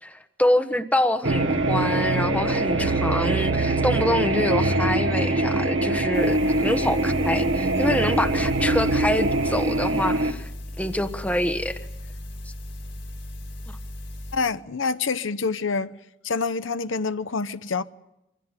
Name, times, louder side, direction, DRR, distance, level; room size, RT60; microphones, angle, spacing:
voice 1, 0.0-10.5 10.8-11.8, left 1 dB, 10° left, 1.2 m, -26 dB
sound 1, 1.2-10.3, right 2 dB, 80° right, 1.7 m, -23 dB
sound 2, 6.1-14.4, left 1 dB, 70° left, 4.8 m, -37 dB
voice 2, 14.3-15.9 16.2-17.8, left 4 dB, 90° left, 0.9 m, -26 dB
24.5 x 16.0 x 9.7 m
head